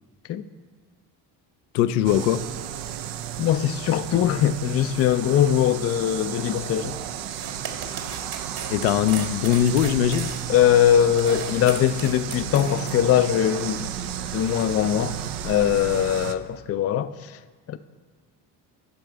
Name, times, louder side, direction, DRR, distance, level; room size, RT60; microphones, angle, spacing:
voice 1, 1.7-2.4 8.7-10.3, left 10 dB, 80° left, 0.6 m, -21 dB
sound 1, 2.0-16.3, right 10 dB, 70° right, 0.7 m, -33 dB
voice 2, 3.4-7.0 10.5-13.9 14.3-15.2 15.4-17.4 17.7-17.8, left 10 dB, 30° left, 0.4 m, -21 dB
sound 2, 7.2-13.0, right 6 dB, 50° right, 1.7 m, -37 dB
11.5 x 5.4 x 4.6 m
hypercardioid pair, 60°, 49 cm